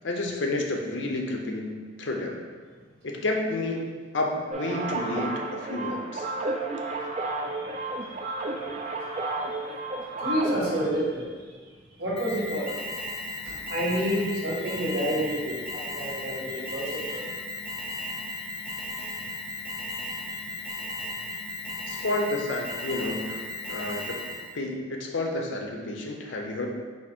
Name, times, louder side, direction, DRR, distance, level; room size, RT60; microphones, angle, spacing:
voice 1, 0.0-2.4 3.0-6.3 21.9-23.4 23.7-24.2 24.5-26.7, left 2 dB, 75° left, 2 dB, 0.6 m, -30 dB
sound 1, 4.5-10.9, right 2 dB, 35° right, 0.3 m, -32 dB
voice 2, 6.7-11.6 12.0-12.7 13.4-17.4 18.3-19.1 20.9-21.3, equal, 55° right, -5 dB, 1.3 m, -31 dB
Alarm, 12.2-24.6, left 2 dB, 30° left, 0.5 m, -35 dB
4.8 x 2.4 x 4.3 m, 1.5 s
head